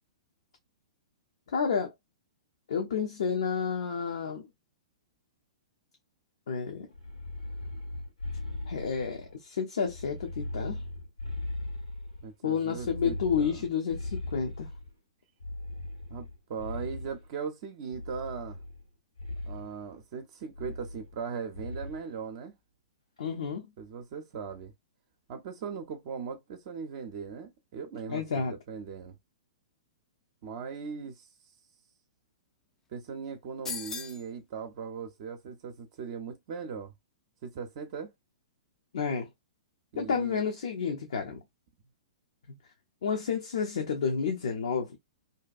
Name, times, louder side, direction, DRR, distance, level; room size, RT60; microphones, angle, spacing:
voice 1, 1.5-1.9 2.7-4.5 6.5-6.9 8.7-10.8 12.4-14.7 23.2-23.7 28.1-28.6 38.9-39.3 40.0-41.4 43.0-45.0, left 6 dB, 60° left, 0.5 m, -30 dB
sound 1, 6.9-9.4 9.8-12.3 12.7-14.9 15.4-17.3 17.9-18.9 19.2-19.7 20.5-21.3 21.5-22.0, left 2 dB, 90° left, 1.3 m, -39 dB
voice 2, 12.2-13.6 16.1-18.6 19.5-22.5 23.8-24.7 25.3-29.2 30.4-31.3 32.9-36.9 37.4-38.1 39.9-40.4, right 6 dB, 45° right, 0.5 m, -39 dB
sound 2, 33.7-34.3, left 5 dB, 10° left, 0.3 m, -37 dB
2.7 x 2.2 x 2.3 m
figure-of-eight pair, 110°, 3 cm